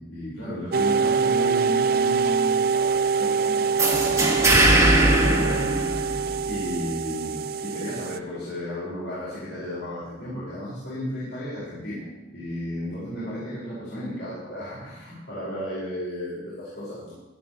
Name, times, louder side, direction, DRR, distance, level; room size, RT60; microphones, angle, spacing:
voice 1, 0.0-4.5 5.0-5.7 6.5-12.1 12.3-17.1, equal, 80° left, -10 dB, 5.9 m, -34 dB
sound 1, 0.7-8.2, right 5 dB, 55° right, 0.4 m, -24 dB
sound 2, 3.8-6.5, right 1 dB, 15° right, 2.2 m, -20 dB
16.0 x 13.5 x 3.3 m, 1.0 s
head